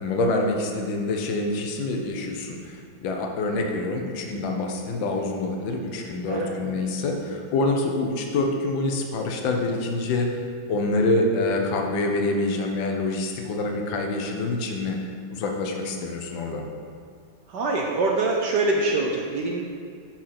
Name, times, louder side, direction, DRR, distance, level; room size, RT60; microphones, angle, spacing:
voice 1, 0.0-10.3 10.7-15.0 15.3-16.7, left 2 dB, 65° left, 2 dB, 1.5 m, -26 dB
voice 2, 17.5-19.6, right 2 dB, 65° right, -1 dB, 1.2 m, -24 dB
8.8 x 4.5 x 5.8 m, 2.2 s
omnidirectional pair, 2.4 m